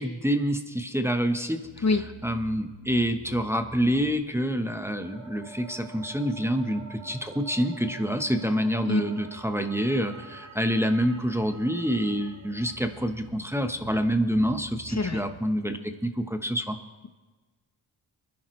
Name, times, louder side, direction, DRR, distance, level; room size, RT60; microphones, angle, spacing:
voice 1, 0.0-1.8 2.2-16.8, equal, 5° right, 6 dB, 1.0 m, -27 dB
sound 1, 1.6-15.4, right 4 dB, 45° right, 4.1 m, -48 dB
voice 2, 14.9-15.2, left 4 dB, 35° left, 8 dB, 0.8 m, -24 dB
23.5 x 10.5 x 3.2 m, 1.3 s
cardioid pair, 65°, 46 cm